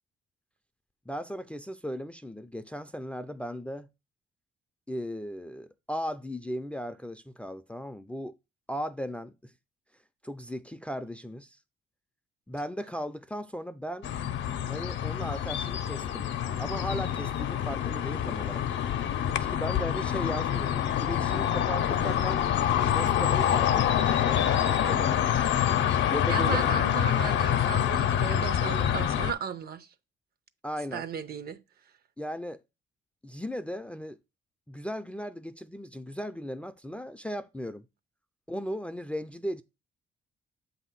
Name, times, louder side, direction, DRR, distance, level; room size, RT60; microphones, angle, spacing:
voice 1, 1.1-3.9 4.9-8.3 8.7-9.5 10.2-11.6 12.5-14.1 14.7-16.3 16.6-18.7 19.4-22.4 22.8-25.2 26.1-26.8 30.6-31.1 32.2-32.6 33.2-34.2 34.7-37.9 38.5-39.6, equal, 5° left, 0.4 m, -37 dB
sound 1, 14.0-29.3, left 10 dB, 70° left, 0.6 m, -26 dB
voice 2, 26.3-29.9 30.9-31.6, right 6 dB, 50° right, 0.6 m, -35 dB
7.6 x 2.8 x 5.7 m
cardioid pair, 90°, 20 cm